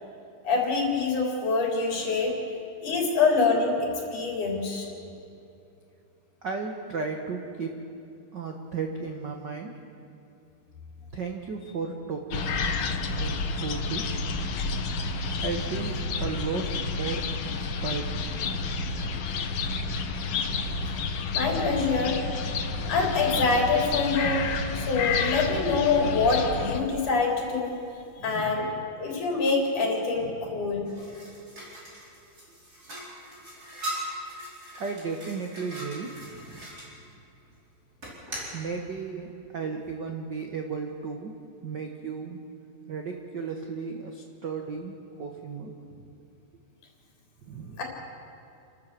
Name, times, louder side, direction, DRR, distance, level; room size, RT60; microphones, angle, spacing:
voice 1, 0.4-2.4 2.8-4.9 21.3-22.2 22.8-24.5 24.7-27.8 28.2-28.7 29.0-30.9 47.8-47.9, left 4 dB, 65° left, -1 dB, 5.1 m, -25 dB
voice 2, 6.4-7.7 8.3-9.8 11.1-12.5 12.9-14.6 15.4-18.7 22.7-22.9 28.2-28.7 30.2-30.6 34.8-36.7 38.5-41.3 41.6-42.4 42.9-46.0 47.4-47.8, right 5 dB, 90° right, 3 dB, 0.9 m, -35 dB
sound 1, 12.3-26.8, left 4 dB, 80° left, 1.1 m, -30 dB
sound 2, 30.8-36.9 38.0-38.6, equal, 25° right, 5.1 m, -40 dB
29.0 x 13.0 x 7.5 m, 2.7 s
omnidirectional pair, 4.0 m